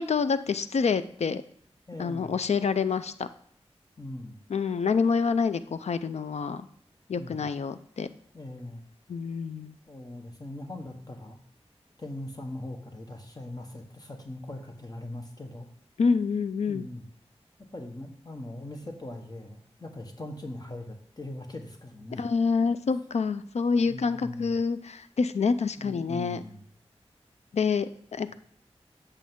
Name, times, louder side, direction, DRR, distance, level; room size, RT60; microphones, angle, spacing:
voice 1, 0.0-1.4 2.0-3.3 4.5-6.6 7.1-8.1 9.1-9.7 16.0-16.9 22.1-26.4 27.5-28.3, left 5 dB, 80° left, 12 dB, 0.4 m, -27 dB
voice 2, 1.9-2.3 4.0-4.4 7.1-7.5 8.3-8.9 9.9-11.4 12.0-15.7 16.7-17.0 17.7-22.2 23.9-24.5 25.8-26.7, left 1 dB, 35° left, 3 dB, 1.2 m, -40 dB
8.5 x 6.6 x 3.7 m, 0.64 s
wide cardioid pair, 70°, 11 cm